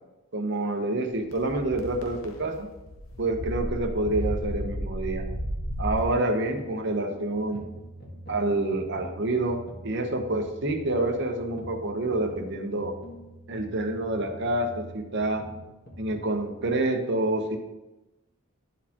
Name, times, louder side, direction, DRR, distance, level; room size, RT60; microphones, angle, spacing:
voice 1, 0.3-2.7 3.2-5.2 5.8-7.6 8.3-9.6 9.8-12.9 13.5-15.4 16.0-17.6, right 2 dB, 55° right, 3 dB, 0.9 m, -27 dB
sound 1, 1.3-6.0, equal, 65° left, 0.8 m, -33 dB
sound 2, 5.8-16.8, right 1 dB, 45° left, 1.5 m, -45 dB
11.0 x 4.2 x 2.9 m, 1.0 s
head